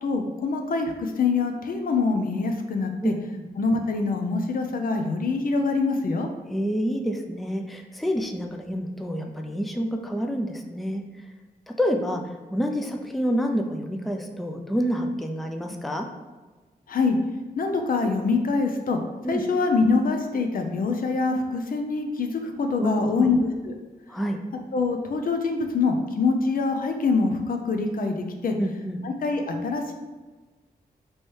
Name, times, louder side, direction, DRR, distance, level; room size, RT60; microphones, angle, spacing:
voice 1, 0.0-3.1 3.6-6.3 16.9-17.2 17.6-19.0 19.3-23.7 24.7-28.5 29.0-29.9, left 4 dB, 60° left, 4 dB, 0.5 m, -25 dB
voice 2, 3.0-3.5 6.5-11.0 11.7-16.1 19.2-19.4 22.8-23.3 24.1-24.4 28.6-29.0, equal, ahead, 3 dB, 0.4 m, -28 dB
3.2 x 3.1 x 4.5 m, 1.3 s
cardioid pair, 75°, 16 cm